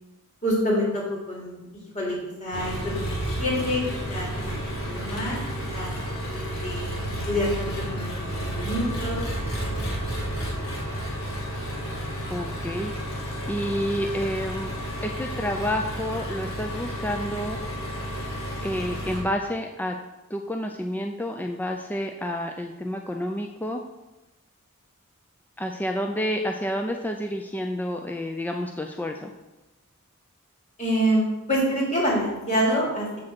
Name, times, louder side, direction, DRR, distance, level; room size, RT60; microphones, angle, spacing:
voice 1, 0.4-3.0 3.4-3.8 4.1-5.4 5.7-5.9 6.3-7.0 7.3-9.2 9.5-9.9 10.9-11.0 30.8-33.2, equal, 35° left, -4 dB, 3.0 m, -27 dB
Engine, 2.5-19.2, right 1 dB, 65° left, 2.2 m, -31 dB
voice 2, 12.3-12.9 13.5-14.7 15.0-17.6 18.6-20.0 20.3-23.8 25.6-29.3, equal, 10° left, 3 dB, 0.4 m, -29 dB
7.5 x 6.3 x 6.0 m, 1.0 s
head